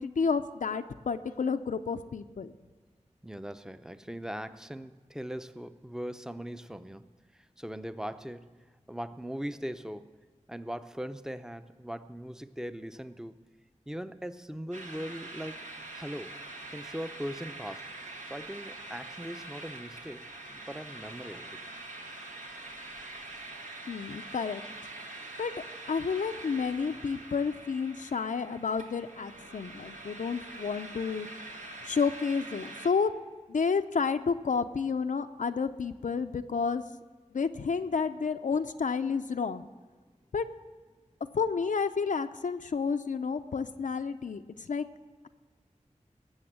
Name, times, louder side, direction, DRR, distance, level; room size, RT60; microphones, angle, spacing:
voice 1, 0.0-2.6 23.9-24.6 25.4-25.5 25.9-31.3 31.8-33.1 33.5-36.8 37.3-39.7 40.3-40.5 41.3-44.9, left 5 dB, 80° left, 0.5 m, -30 dB
voice 2, 3.2-7.1 7.3-10.2 10.5-13.4 13.9-15.7 15.9-16.4 16.7-17.9 18.2-21.6, equal, 5° right, 0.6 m, -40 dB
sound 1, 14.7-32.9, right 2 dB, 75° right, 1.6 m, -44 dB
18.0 x 7.0 x 7.5 m
wide cardioid pair, 65°, 13 cm